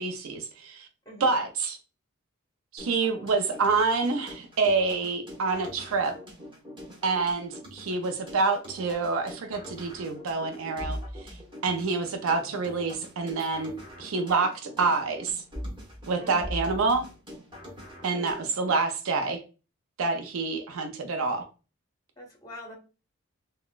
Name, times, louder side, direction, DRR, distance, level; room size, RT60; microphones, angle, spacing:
voice 1, 0.0-0.9 1.2-1.8 2.7-6.2 7.0-11.0 11.6-15.4 16.1-17.0 18.0-19.4 20.0-21.4, right 4 dB, 80° right, 0.5 m, -27 dB
voice 2, 1.1-1.4 16.2-16.6 18.1-18.4 22.2-22.7, left 1 dB, 15° left, 0.8 m, -44 dB
sound 1, 2.8-18.8, equal, 20° right, 1.0 m, -42 dB
3.8 x 2.1 x 2.3 m
head